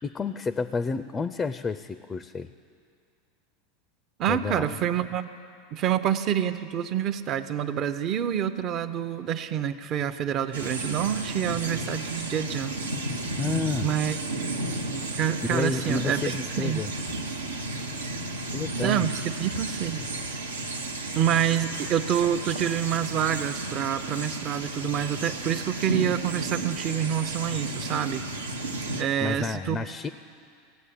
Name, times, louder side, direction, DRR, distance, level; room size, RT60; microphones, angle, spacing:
voice 1, 0.0-2.5 4.3-4.7 13.4-13.9 15.4-16.9 18.5-19.0 29.2-30.1, left 4 dB, 20° left, 13 dB, 0.4 m, -30 dB
voice 2, 4.2-5.3 5.7-12.8 13.8-14.2 15.2-16.8 18.8-20.0 21.1-28.2 29.0-29.8, right 9 dB, 40° right, 12 dB, 0.7 m, -27 dB
sound 1, 10.5-29.0, right 2 dB, 85° right, 0.9 m, -33 dB
16.0 x 8.1 x 9.2 m, 2.3 s
figure-of-eight pair, 85°, 0 cm